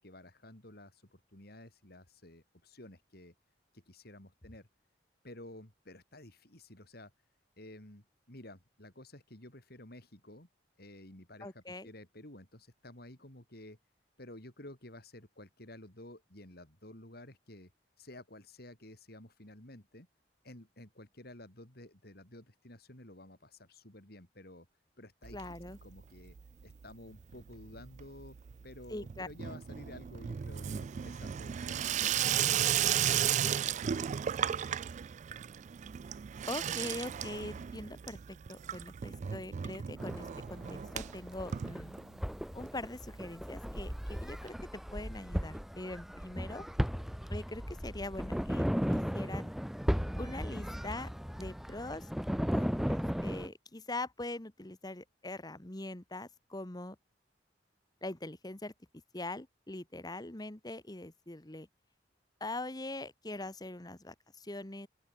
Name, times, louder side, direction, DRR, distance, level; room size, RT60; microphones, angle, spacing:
voice 1, 0.0-3.3 3.7-4.7 5.2-7.1 7.6-10.5 10.8-13.8 14.2-17.7 18.0-20.1 20.4-24.7 25.0-25.4 25.8-26.4 26.6-28.4 28.6-34.6, left 1 dB, 60° left, 4.8 m, -52 dB
voice 2, 11.4-11.9 25.3-25.8 28.9-29.3 36.5-42.0 42.5-46.6 47.3-49.5 50.2-51.1 51.4-52.1 52.5-57.0 58.0-58.7 59.1-61.7 62.4-64.9, left 2 dB, 20° left, 1.5 m, -42 dB
Water tap faucet / Sink (filling or washing), 25.2-26.0 26.3-26.8 27.1-42.4 42.7-42.8 43.0-43.1 43.3-43.4 44.5-44.6, right 9 dB, 40° right, 0.3 m, -35 dB
sound 1, 40.0-53.5, equal, ahead, 0.7 m, -36 dB
open air
head